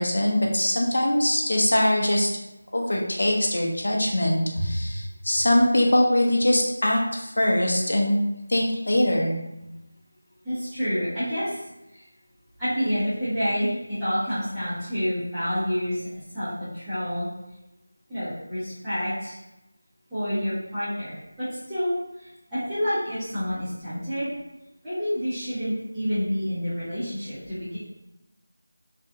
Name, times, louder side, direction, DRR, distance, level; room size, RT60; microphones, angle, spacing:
voice 1, 0.0-2.3 2.7-8.2 8.5-9.3, left 1 dB, 65° left, -1 dB, 0.7 m, -22 dB
voice 2, 10.4-11.6 11.9-12.0 12.6-17.3 18.1-19.4 20.1-24.3 24.8-27.8, equal, ahead, -22 dB, 0.8 m, -28 dB
3.4 x 2.4 x 2.7 m, 0.92 s
figure-of-eight pair, 175°, 0 cm